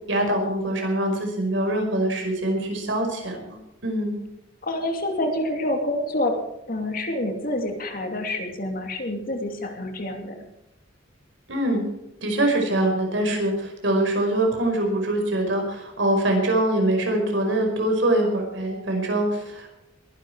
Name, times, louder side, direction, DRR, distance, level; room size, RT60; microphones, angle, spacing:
voice 1, 0.1-4.2 11.5-11.8 12.2-19.7, right 1 dB, 70° right, 2 dB, 5.1 m, -24 dB
voice 2, 4.6-6.4 6.7-10.4, left 1 dB, 50° left, 4 dB, 2.7 m, -27 dB
21.5 x 11.0 x 4.7 m, 0.88 s
head